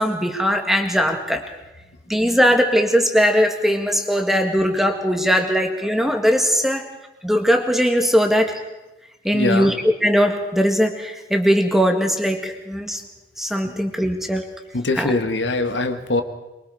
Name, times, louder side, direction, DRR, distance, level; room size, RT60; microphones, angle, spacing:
voice 1, 0.0-1.4 2.1-6.8 7.2-8.6 9.2-9.7 10.0-13.0 13.4-14.5 15.0-15.2, equal, ahead, 4 dB, 1.9 m, -19 dB
voice 2, 9.3-9.8 13.6-13.7 14.7-16.2, left 2 dB, 90° left, 8 dB, 1.6 m, -22 dB
23.5 x 23.5 x 4.9 m, 1.0 s
head